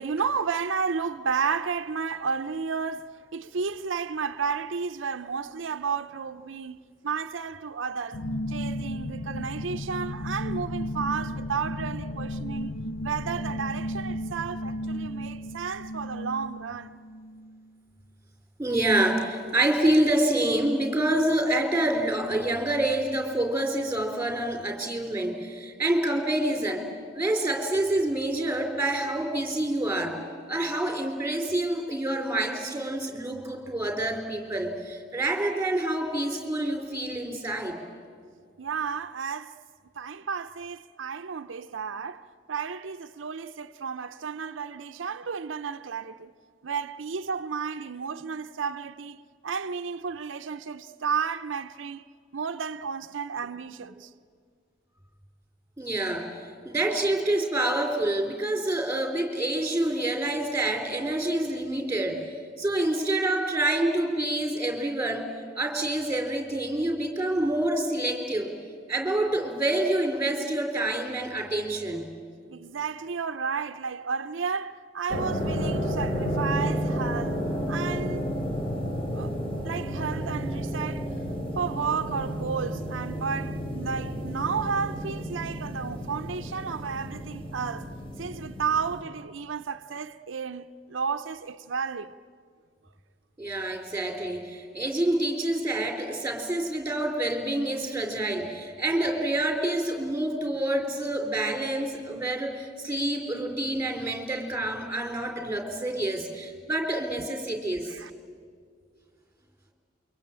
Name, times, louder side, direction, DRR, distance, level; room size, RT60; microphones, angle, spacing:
voice 1, 0.0-6.8 7.0-8.2 8.5-12.7 13.0-17.0 38.6-39.6 40.0-46.3 46.6-52.0 52.3-54.1 72.5-78.3 79.1-79.3 79.6-81.1 81.6-92.1 107.9-108.1, right 6 dB, 90° right, 0.6 m, -32 dB
sound 1, 8.1-17.6, left 1 dB, 85° left, 0.7 m, -34 dB
voice 2, 18.6-26.9 27.1-30.2 30.5-37.8 55.8-56.3 56.7-62.2 62.6-68.5 68.9-72.1 93.4-107.9, right 1 dB, 10° right, 3.5 m, -27 dB
sound 2, 75.1-89.0, equal, 30° left, 3.6 m, -32 dB
28.5 x 23.5 x 8.7 m
head